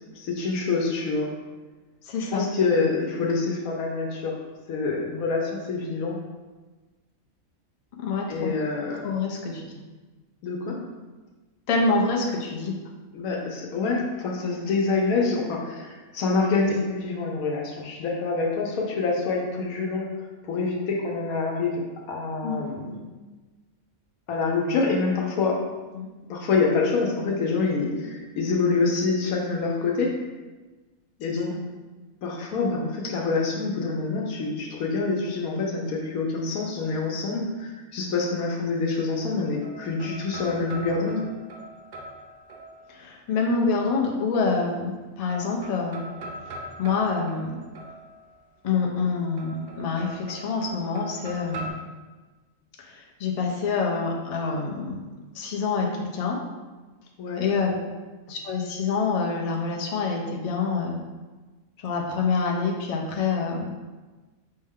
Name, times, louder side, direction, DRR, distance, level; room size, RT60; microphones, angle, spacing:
voice 1, 0.2-1.3 2.3-4.4 4.7-6.2 8.3-9.0 10.4-10.8 13.1-20.1 20.5-21.8 22.1-22.9 24.3-25.6 26.3-30.1 31.2-31.5 32.2-41.2 57.2-57.4, left 4 dB, 85° left, 0 dB, 1.2 m, -26 dB
voice 2, 2.0-2.4 8.0-8.6 9.0-9.7 11.7-12.8 22.4-23.1 25.9-26.1 42.9-46.0 46.5-47.6 48.6-51.7 52.8-55.0 55.3-56.4 57.4-57.8 58.3-61.0 61.8-63.7, left 4 dB, 65° left, 0 dB, 0.3 m, -26 dB
sound 1, 39.2-43.2 44.3-45.0 45.3-48.5 49.4-51.7, right 1 dB, 60° right, 0.6 m, -42 dB
5.4 x 2.2 x 3.5 m, 1.3 s
omnidirectional pair, 1.5 m